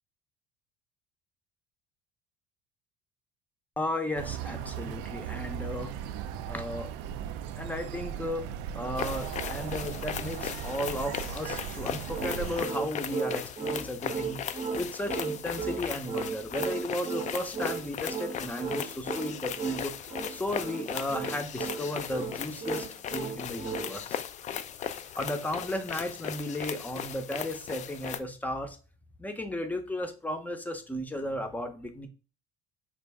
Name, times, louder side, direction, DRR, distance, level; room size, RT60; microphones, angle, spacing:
voice 1, 3.8-5.9 6.5-6.9 7.6-19.9 20.3-24.2 25.2-28.8 29.2-32.1, left 1 dB, 10° left, 6 dB, 0.7 m, -34 dB
sound 1, 4.1-12.6, right 9 dB, 80° right, 0.4 m, -37 dB
sound 2, 9.0-28.2, left 9 dB, 40° left, 0.4 m, -37 dB
sound 3, 12.1-23.9, right 6 dB, 35° right, 0.7 m, -35 dB
4.2 x 2.5 x 3.4 m, 0.35 s
supercardioid pair, 100°, 18 cm